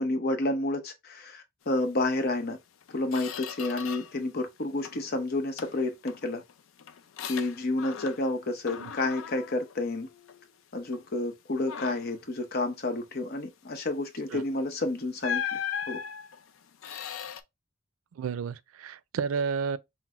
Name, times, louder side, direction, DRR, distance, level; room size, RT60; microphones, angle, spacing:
voice 1, 0.0-2.6 2.9-6.4 7.3-10.1 10.7-15.6 15.9-16.0, left 2 dB, 50° left, 0.8 m, -30 dB
Squeak, 2.3-2.5 2.8-4.3 4.6-5.1 5.6-8.4 8.7-10.5 10.9-11.1 11.6-12.2 14.3-14.5 15.2-17.4, left 8 dB, 75° left, 0.4 m, -38 dB
voice 2, 18.2-19.8, right 6 dB, 90° right, 0.4 m, -31 dB
5.9 x 2.0 x 2.3 m
head